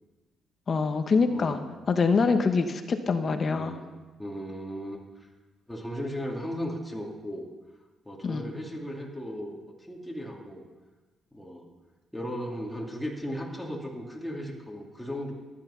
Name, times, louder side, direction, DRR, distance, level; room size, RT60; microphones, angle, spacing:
voice 1, 0.7-1.6 1.9-3.8 8.2-8.5, left 4 dB, 45° left, 7 dB, 1.1 m, -25 dB
voice 2, 1.3-1.6 3.5-3.8 4.2-5.3 5.7-7.5 8.1-9.6 9.9-10.6 11.3-11.6 12.1-15.3, equal, 5° left, -2 dB, 2.6 m, -36 dB
13.5 x 10.5 x 5.8 m, 1.2 s
cardioid pair, 85°, 0 cm